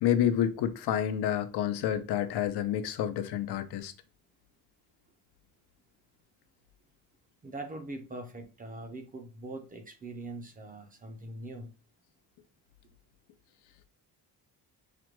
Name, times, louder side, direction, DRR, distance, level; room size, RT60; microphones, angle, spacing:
voice 1, 0.0-3.9, left 10 dB, 85° left, 0.6 m, -29 dB
voice 2, 7.4-11.7, right 2 dB, 20° right, 0.4 m, -42 dB
5.0 x 2.1 x 3.0 m
cardioid pair, 165°, 39 cm